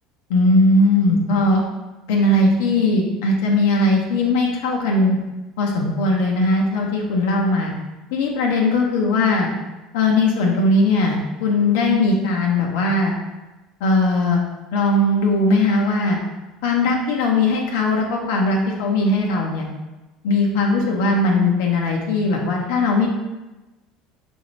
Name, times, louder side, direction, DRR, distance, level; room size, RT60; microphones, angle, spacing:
voice 1, 0.3-1.6 2.1-5.2 5.6-7.7 8.1-9.5 9.9-13.1 13.8-14.4 14.7-16.2 16.6-19.7 20.2-23.1, left 2 dB, 85° left, 0 dB, 0.6 m, -19 dB
4.9 x 2.6 x 3.1 m, 1.1 s
supercardioid pair, 115°, 0 cm